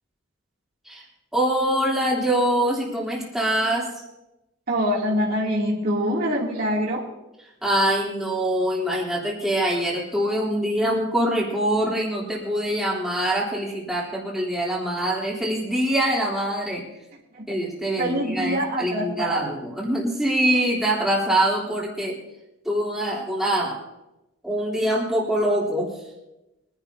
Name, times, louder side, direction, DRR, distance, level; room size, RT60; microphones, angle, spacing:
voice 1, 1.3-3.9 7.6-16.8 17.5-22.2 22.6-23.8 24.4-25.9, right 1 dB, ahead, -5 dB, 3.3 m, -24 dB
voice 2, 4.7-7.1 17.3-17.5 18.0-19.5, equal, 45° right, -4 dB, 2.9 m, -25 dB
23.5 x 11.0 x 2.8 m, 0.95 s
head